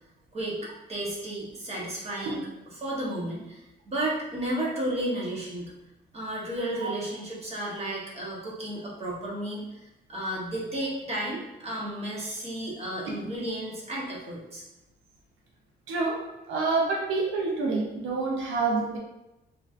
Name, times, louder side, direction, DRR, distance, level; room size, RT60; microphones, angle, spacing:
voice 1, 0.3-2.4 2.8-5.7 6.1-14.6, right 1 dB, 30° right, -4 dB, 1.1 m, -33 dB
voice 2, 15.9-19.0, right 3 dB, 85° right, -2 dB, 0.6 m, -28 dB
3.0 x 2.6 x 2.4 m, 0.93 s
cardioid pair, 90°, 20 cm